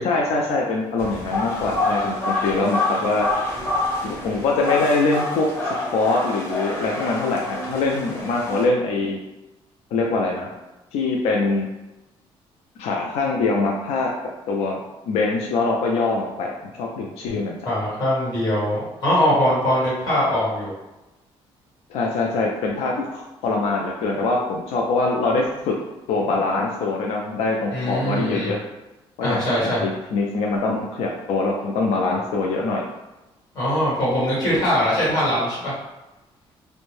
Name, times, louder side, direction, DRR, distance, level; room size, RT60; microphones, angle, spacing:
voice 1, 0.0-3.3 4.0-9.2 9.9-10.5 10.9-11.7 12.8-14.1 14.5-14.8 15.1-17.6 21.9-25.8 26.1-28.6 29.2-32.8, left 3 dB, 85° left, -1 dB, 0.4 m, -23 dB
sound 1, 1.0-8.6, left 2 dB, 20° left, 0.6 m, -27 dB
voice 2, 17.6-20.7 27.7-28.5 29.2-29.9 33.5-35.7, equal, 40° left, -8 dB, 1.3 m, -22 dB
2.5 x 2.1 x 3.1 m, 1.0 s
cardioid pair, 160°, 10 cm